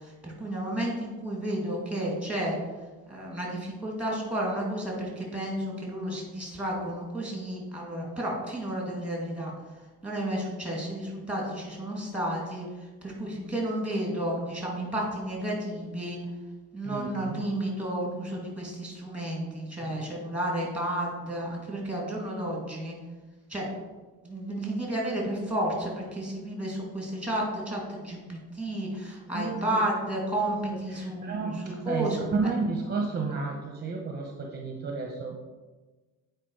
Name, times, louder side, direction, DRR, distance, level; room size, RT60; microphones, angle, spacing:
voice 1, 0.0-2.6 3.1-9.5 10.0-16.2 16.7-23.0 23.5-23.7 24.2-31.6 31.8-32.2, right 1 dB, 5° right, -2 dB, 2.5 m, -32 dB
voice 2, 16.8-17.4 19.8-19.9 29.3-29.8 30.7-35.5, right 4 dB, 30° right, 1 dB, 0.9 m, -32 dB
8.6 x 4.7 x 4.7 m, 1.3 s
cardioid pair, 125°, 31 cm